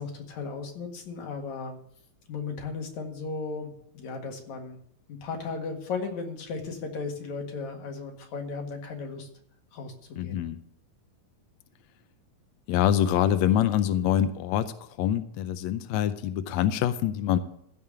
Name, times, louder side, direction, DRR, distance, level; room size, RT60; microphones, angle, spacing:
voice 1, 0.0-1.8 2.3-4.8 5.1-9.3 9.7-10.4, left 4 dB, 60° left, 3 dB, 3.0 m, -36 dB
voice 2, 10.2-10.6 12.7-17.4, left 11 dB, 80° left, 10 dB, 1.7 m, -25 dB
15.0 x 5.4 x 8.6 m, 0.70 s
omnidirectional pair, 3.8 m